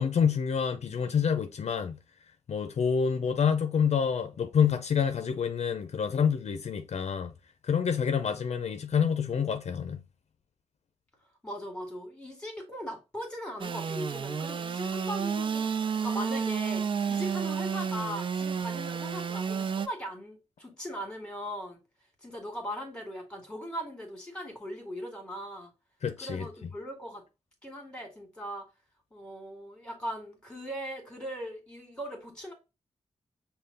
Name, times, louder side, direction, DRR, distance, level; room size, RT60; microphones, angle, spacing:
voice 1, 0.0-2.0 2.5-7.3 7.7-10.0 26.0-26.4, left 7 dB, 70° left, 0.5 m, -27 dB
voice 2, 11.4-21.8 22.2-25.7 26.2-27.2 27.6-28.7 29.1-32.5, equal, 10° left, 1.9 m, -39 dB
Engine / Sawing, 13.6-19.9, right 6 dB, 45° right, 0.4 m, -31 dB
5.5 x 2.2 x 3.8 m
wide cardioid pair, 95°, 12 cm